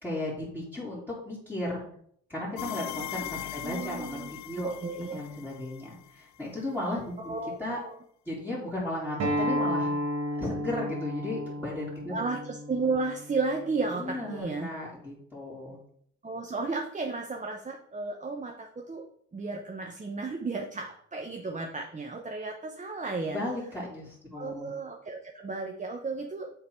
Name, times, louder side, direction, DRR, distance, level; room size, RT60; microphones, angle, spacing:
voice 1, 0.0-1.9 2.3-4.7 5.1-7.8 8.2-9.9 10.4-12.3 14.0-15.8 23.3-24.7, left 1 dB, 5° left, -10 dB, 3.0 m, -35 dB
sound 1, 2.6-6.3, left 12 dB, 70° left, 0.4 m, -40 dB
voice 2, 3.6-4.3 4.6-5.2 7.2-7.6 7.8-8.0 12.1-14.7 16.2-19.0 19.3-23.4 24.3-26.5, right 3 dB, 25° right, 3 dB, 0.8 m, -33 dB
Acoustic guitar, 9.2-14.4, equal, 55° right, 1.4 m, -33 dB
8.5 x 3.8 x 4.5 m, 0.65 s
cardioid pair, 90°, 30 cm